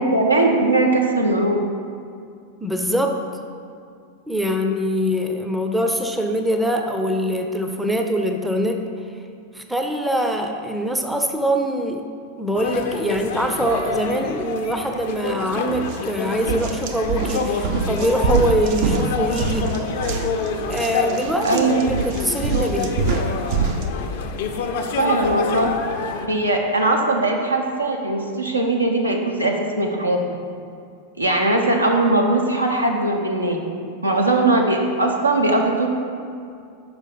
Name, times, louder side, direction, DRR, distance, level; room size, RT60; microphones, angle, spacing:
voice 1, 0.0-1.6 21.4-21.8 25.0-25.7 26.3-30.2 31.2-33.6 34.0-35.9, right 2 dB, 85° right, 0 dB, 0.8 m, -20 dB
voice 2, 2.6-3.2 4.3-8.9 9.5-12.1 12.4-19.8 20.7-22.9, equal, 5° right, 4 dB, 0.5 m, -23 dB
sound 1, 12.5-26.3, left 5 dB, 50° left, 0.5 m, -28 dB
sound 2, 15.7-16.0 16.4-23.9, right 4 dB, 45° right, 0.6 m, -25 dB
6.1 x 5.2 x 5.6 m, 2.4 s
figure-of-eight pair, 90°, 0 cm